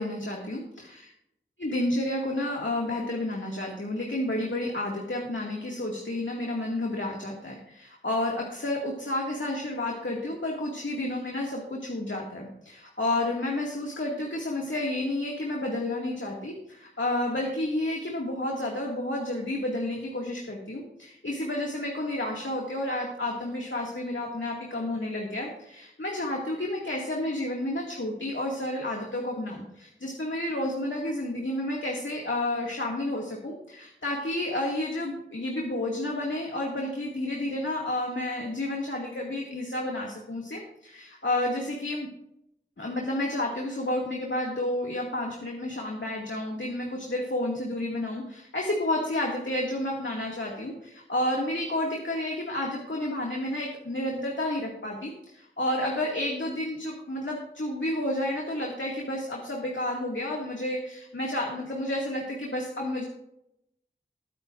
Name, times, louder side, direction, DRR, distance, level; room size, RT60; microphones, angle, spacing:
voice 1, 0.0-1.1 1.6-42.1 42.8-63.0, left 1 dB, 70° left, -2 dB, 2.2 m, -31 dB
21.0 x 9.7 x 2.5 m, 0.80 s
wide cardioid pair, 45°, 20 cm